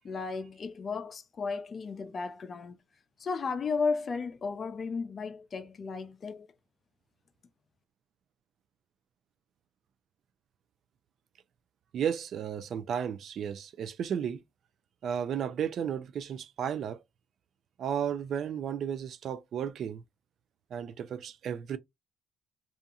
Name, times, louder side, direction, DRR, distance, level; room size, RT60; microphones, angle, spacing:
voice 1, 0.0-2.8 3.2-6.5, left 4 dB, 45° left, 0.4 m, -34 dB
voice 2, 11.9-14.4 15.0-17.0 17.8-20.0 20.7-21.8, right 8 dB, 65° right, 0.4 m, -33 dB
2.7 x 2.4 x 2.4 m
supercardioid pair, 70°, 0 cm